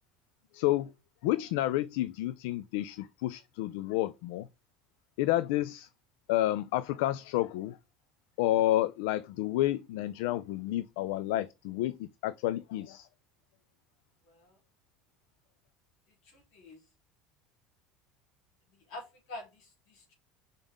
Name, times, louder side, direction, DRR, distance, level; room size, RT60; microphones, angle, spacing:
voice 1, 0.5-0.9 1.2-4.5 5.2-5.9 6.3-7.8 8.4-13.1, left 15 dB, 80° left, 0.3 m, -30 dB
voice 2, 14.3-14.6 16.2-16.8 18.9-20.1, left 2 dB, 65° left, 3.5 m, -47 dB
5.3 x 5.3 x 3.6 m
cardioid pair, 150°, 0 cm